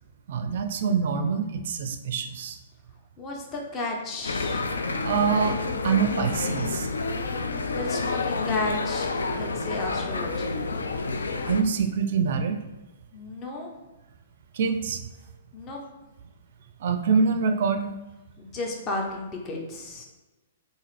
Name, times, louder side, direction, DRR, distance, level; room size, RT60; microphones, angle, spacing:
voice 1, 0.3-2.6 5.0-6.9 11.5-12.6 14.5-15.0 16.8-17.9, right 5 dB, 60° right, 8 dB, 0.4 m, -25 dB
voice 2, 3.2-4.7 7.7-10.5 13.1-13.7 15.5-15.8 18.4-20.0, left 2 dB, 25° left, 0 dB, 0.8 m, -33 dB
sound 1, 4.2-11.6, left 3 dB, 90° left, 0.3 m, -29 dB
3.6 x 2.5 x 3.2 m, 1.1 s
hypercardioid pair, 130°, 0 cm